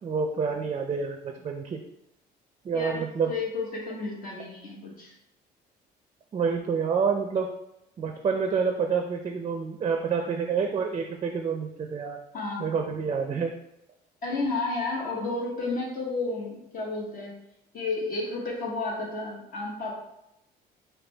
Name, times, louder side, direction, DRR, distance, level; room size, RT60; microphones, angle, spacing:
voice 1, 0.0-1.8 2.6-3.3 6.3-7.5 8.0-12.2 12.6-13.5, right 5 dB, 35° right, 4 dB, 0.4 m, -28 dB
voice 2, 2.7-5.1 12.3-12.7 14.2-17.3 17.7-20.0, left 3 dB, 55° left, -3 dB, 1.3 m, -32 dB
4.8 x 2.3 x 3.3 m, 0.83 s
cardioid pair, 110°, 17 cm